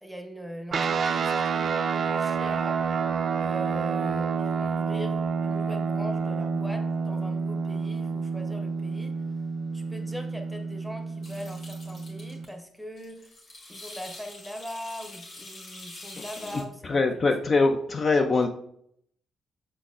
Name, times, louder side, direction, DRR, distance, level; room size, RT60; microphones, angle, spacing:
voice 1, 0.0-2.8 3.4-9.1 9.7-13.3 13.7-17.0 17.5-17.6, equal, ahead, 4 dB, 0.8 m, -41 dB
sound 1, 0.7-12.4, right 5 dB, 50° right, 0.4 m, -29 dB
sound 2, 11.2-12.5 12.8-16.6, left 2 dB, 65° left, 1.4 m, -45 dB
voice 2, 16.8-18.5, left 3 dB, 40° left, 5 dB, 0.4 m, -23 dB
5.6 x 3.9 x 2.4 m, 0.68 s
cardioid pair, 90°, 0 cm